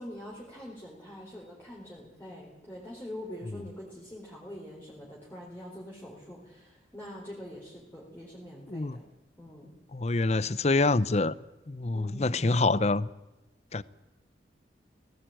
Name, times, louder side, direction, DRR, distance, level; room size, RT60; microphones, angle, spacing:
voice 1, 0.0-9.0 9.4-9.7 11.9-12.5, left 1 dB, 10° left, 4.1 m, -44 dB
voice 2, 9.9-11.3 11.7-13.1 13.7-13.8, left 3 dB, 35° left, 0.7 m, -26 dB
18.0 x 17.5 x 9.1 m
head